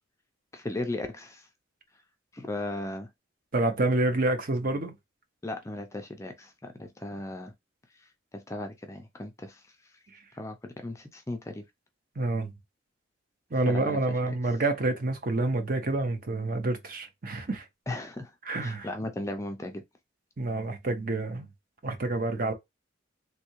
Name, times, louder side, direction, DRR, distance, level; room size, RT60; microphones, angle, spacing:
voice 1, 0.5-1.5 2.3-3.1 5.4-7.5 8.0-8.1 8.3-9.6 10.3-11.6 13.7-14.0 17.9-18.3 18.6-19.8, left 1 dB, 15° left, 0.4 m, -36 dB
voice 2, 3.5-4.9 12.2-12.5 13.5-17.6 18.5-18.9 20.4-21.5 21.8-22.5, right 2 dB, 45° right, 0.8 m, -28 dB
3.4 x 2.7 x 3.0 m
head